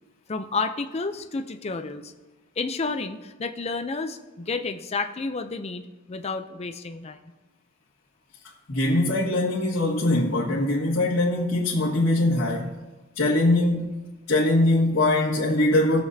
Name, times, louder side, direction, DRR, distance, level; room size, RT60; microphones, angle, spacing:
voice 1, 0.3-2.1 2.6-7.3, left 3 dB, 30° left, 0.5 m, -31 dB
voice 2, 8.7-12.7 13.2-13.9 14.3-16.0, left 2 dB, 90° left, 1.8 m, -22 dB
21.0 x 7.0 x 2.8 m
head